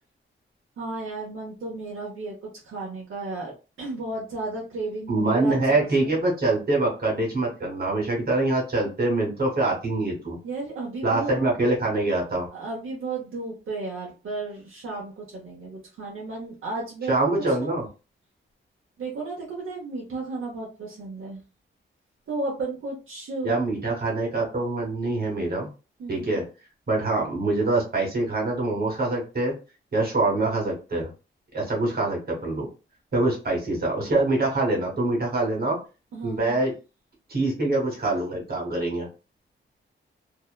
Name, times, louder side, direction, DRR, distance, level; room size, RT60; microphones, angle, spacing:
voice 1, 0.8-3.5 3.8-6.1 10.4-11.3 12.5-17.1 17.5-17.7 19.0-21.4 22.3-23.6 26.0-26.4 36.1-36.6, right 3 dB, 75° right, -3 dB, 0.8 m, -34 dB
voice 2, 5.1-10.4 11.0-12.5 17.1-17.9 23.4-25.7 26.1-26.4 26.9-29.5 29.9-31.1 31.5-32.7 33.1-35.8 36.2-36.7 37.3-39.1, right 2 dB, 45° right, -1 dB, 1.3 m, -24 dB
2.7 x 2.1 x 2.3 m, 0.31 s
wide cardioid pair, 140°, 21 cm